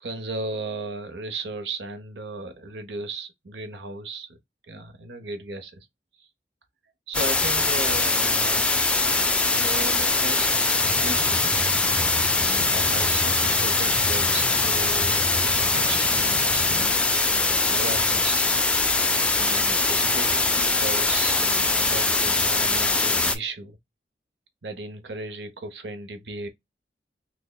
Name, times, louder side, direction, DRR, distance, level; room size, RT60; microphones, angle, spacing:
voice 1, 0.0-4.4 4.7-5.9 6.2-6.3 7.1-8.8 9.4-11.8 12.3-18.5 19.4-23.8 24.6-26.5, right 2 dB, 80° right, 0.8 m, -36 dB
sound 1, 7.1-23.4, left 3 dB, 5° left, 0.3 m, -22 dB
sound 2, 10.8-16.9, left 1 dB, 25° right, 0.8 m, -35 dB
5.9 x 2.1 x 2.2 m
head